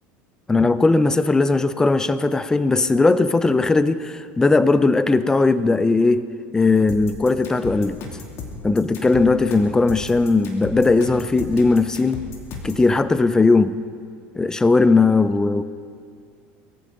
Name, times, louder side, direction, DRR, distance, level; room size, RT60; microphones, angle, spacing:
voice 1, 0.5-6.3 6.5-8.0 8.6-12.2 12.6-13.8 14.3-15.6, left 3 dB, 10° left, 14 dB, 0.6 m, -18 dB
sound 1, 6.9-12.9, left 4 dB, 45° left, 2.6 m, -35 dB
22.5 x 14.5 x 3.9 m, 2.3 s
supercardioid pair, 115°, 6 cm